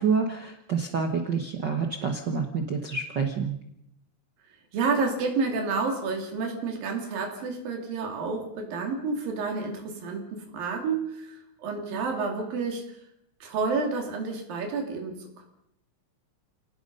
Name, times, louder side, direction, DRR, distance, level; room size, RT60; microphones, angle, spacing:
voice 1, 0.0-3.6, right 5 dB, 55° right, 4 dB, 1.2 m, -28 dB
voice 2, 4.7-13.0 13.4-15.5, right 4 dB, 80° right, 2 dB, 4.6 m, -30 dB
29.0 x 18.5 x 5.5 m, 0.77 s
omnidirectional pair, 4.0 m